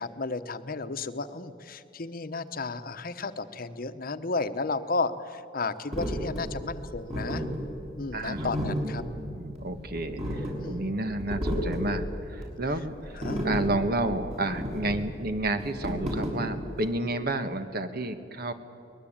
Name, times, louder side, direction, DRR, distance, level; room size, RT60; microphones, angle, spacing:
voice 1, 0.0-7.4 8.0-9.0 10.6-10.8 13.1-13.5, left 3 dB, 55° left, 11 dB, 1.0 m, -33 dB
sound 1, 5.9-16.9, equal, 40° right, 6.5 m, -33 dB
voice 2, 8.1-13.2 13.4-18.5, right 2 dB, 60° right, 9 dB, 1.4 m, -31 dB
23.5 x 20.0 x 8.8 m, 2.5 s
head